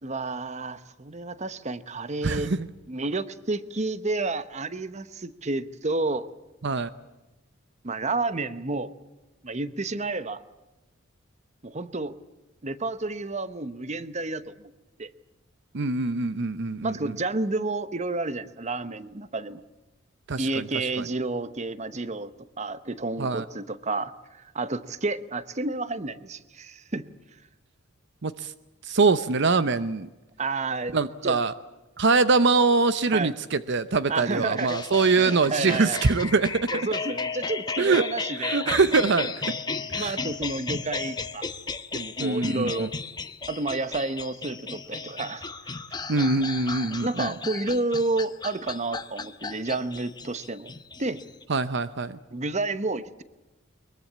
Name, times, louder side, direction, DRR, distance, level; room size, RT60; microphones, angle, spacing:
voice 1, 0.0-2.5 2.9-6.3 7.8-8.9 9.4-10.4 11.6-12.2 12.6-14.7 15.0-15.1 16.8-19.6 20.4-22.3 22.6-27.1 30.4-30.9 31.2-31.4 33.1-33.3 34.1-34.8 35.2-36.0 36.7-38.8 39.9-41.4 41.9-42.9 43.5-45.8 47.0-50.7 51.0-51.2 52.3-53.2, right 3 dB, 35° right, 13 dB, 1.0 m, -30 dB
voice 2, 2.2-2.7 6.6-6.9 15.7-17.2 20.3-20.7 21.0-21.1 23.2-23.4 28.2-28.5 28.8-30.1 30.9-31.5 32.0-36.6 37.8-38.1 38.4-39.6 39.9-40.1 42.2-42.9 46.1-47.3 51.5-52.2, right 4 dB, 55° right, 13 dB, 0.8 m, -23 dB
sound 1, 34.6-51.4, left 4 dB, 20° left, 0.9 m, -34 dB
23.0 x 22.0 x 8.6 m, 1.1 s
head